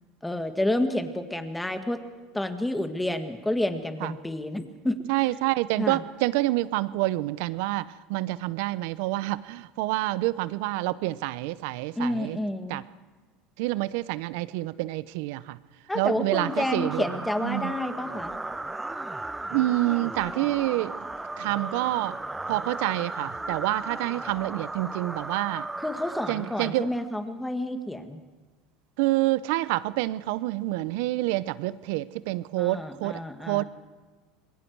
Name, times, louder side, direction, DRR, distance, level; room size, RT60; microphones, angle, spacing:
voice 1, 0.2-2.0 2.3-5.0 5.8-6.0 12.0-12.8 15.9-18.3 25.8-28.2 32.6-33.7, left 1 dB, 5° left, 7 dB, 1.8 m, -29 dB
voice 2, 5.1-12.4 12.7-12.8 13.6-15.6 15.9-17.1 17.4-17.8 19.5-20.9 21.4-22.2 22.5-25.7 26.3-26.9 29.0-33.6, right 18 dB, 70° right, 17 dB, 0.7 m, -27 dB
sound 1, 16.3-27.1, right 2 dB, 10° right, 0.8 m, -36 dB
26.5 x 21.0 x 4.7 m, 1.4 s
supercardioid pair, 100°, 0 cm